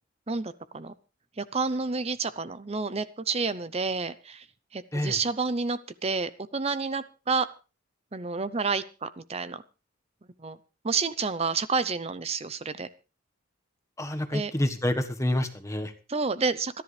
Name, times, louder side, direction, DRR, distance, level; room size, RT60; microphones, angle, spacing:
voice 1, 0.3-0.9 1.4-4.5 4.7-7.5 8.1-9.6 10.4-10.6 10.8-12.9 14.3-14.5 16.1-16.8, right 4 dB, 30° right, 0.6 m, -29 dB
voice 2, 14.0-15.9, left 1 dB, 15° left, 1.4 m, -28 dB
27.0 x 11.0 x 3.3 m
head